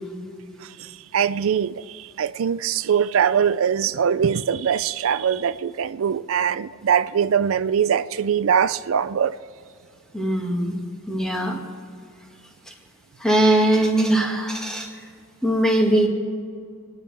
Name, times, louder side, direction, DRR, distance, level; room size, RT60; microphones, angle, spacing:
voice 1, 0.8-9.4, right 7 dB, 70° right, 0.4 m, -22 dB
voice 2, 10.1-10.8 11.1-11.6 12.7-12.8 13.2-14.9 15.4-16.1, right 1 dB, 5° left, 1.9 m, -20 dB
27.5 x 10.5 x 3.5 m
head